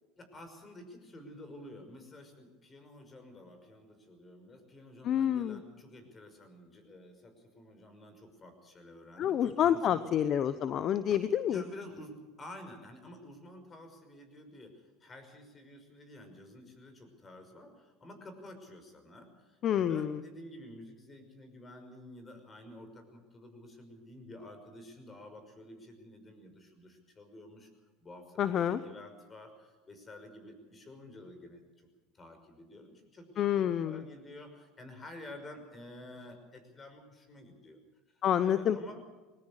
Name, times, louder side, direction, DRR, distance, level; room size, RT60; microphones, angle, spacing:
voice 1, 0.2-10.1 11.4-27.7 28.0-31.9 32.1-37.8 38.1-39.0, left 1 dB, 25° left, 7 dB, 5.8 m, -50 dB
voice 2, 5.0-5.6 9.2-11.6 19.6-20.2 28.4-28.8 33.4-34.0 38.2-39.0, left 9 dB, 45° left, 13 dB, 0.9 m, -28 dB
21.5 x 19.0 x 6.6 m, 1.2 s
supercardioid pair, 105°, 0 cm